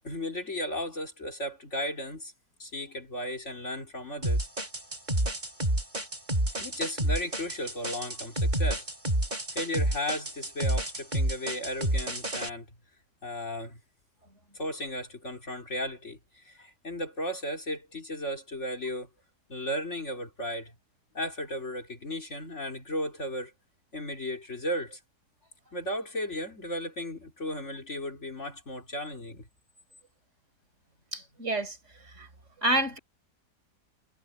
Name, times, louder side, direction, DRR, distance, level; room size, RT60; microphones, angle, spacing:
voice 1, 0.0-2.3 2.6-4.5 6.6-8.9 9.5-12.7 13.2-13.8 14.5-19.1 19.5-20.7 21.1-23.5 23.9-25.0 25.7-29.5, equal, 40° left, 3.9 m, -35 dB
sound 1, 4.2-12.5, right 1 dB, 25° right, 5.3 m, -29 dB
voice 2, 31.1-31.8 32.1-32.3 32.6-33.0, right 2 dB, 40° right, 5.1 m, -28 dB
omnidirectional pair, 1.8 m